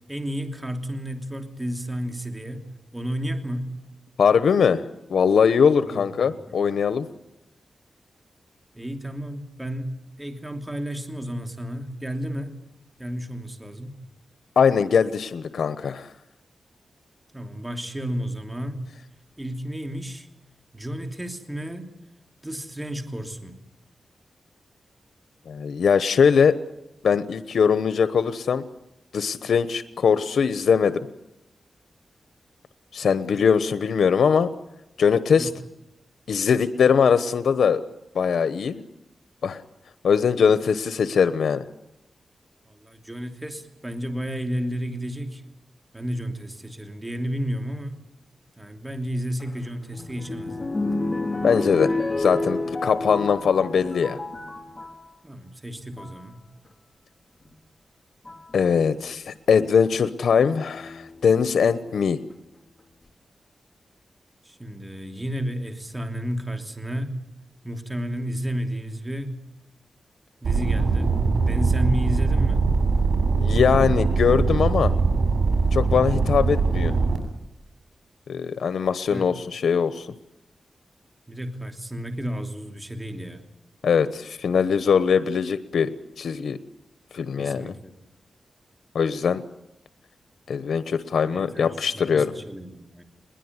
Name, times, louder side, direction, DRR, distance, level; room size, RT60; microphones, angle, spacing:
voice 1, 0.1-3.8 5.9-6.6 8.7-12.6 13.0-14.0 17.3-18.8 19.4-20.3 20.7-22.0 22.4-23.6 35.4-35.5 42.7-45.4 45.9-48.0 48.6-50.7 55.2-56.4 64.4-67.3 67.6-69.4 70.4-72.7 79.1-79.2 81.3-83.4 87.4-87.9 91.3-93.0, equal, 10° right, 6 dB, 3.0 m, -32 dB
voice 2, 4.2-7.1 14.6-16.1 25.5-26.6 27.0-28.6 29.1-31.0 32.9-34.5 35.0-35.5 36.3-37.8 38.1-38.8 39.4-39.6 40.0-41.6 51.4-54.2 58.5-62.2 73.4-74.9 75.7-76.9 78.3-80.1 83.8-85.9 86.2-86.6 87.1-87.7 88.9-89.4 90.5-92.3, left 6 dB, 90° left, 12 dB, 1.0 m, -21 dB
sound 1, 49.4-55.0 55.8-56.2 57.4-57.5 58.2-58.6 60.7-61.3 62.0-62.1 62.3-62.4, left 2 dB, 25° left, 3.6 m, -30 dB
sound 2, 70.4-77.2, right 4 dB, 80° right, 6.7 m, -21 dB
21.5 x 20.5 x 9.7 m, 0.89 s
wide cardioid pair, 100°, 0 cm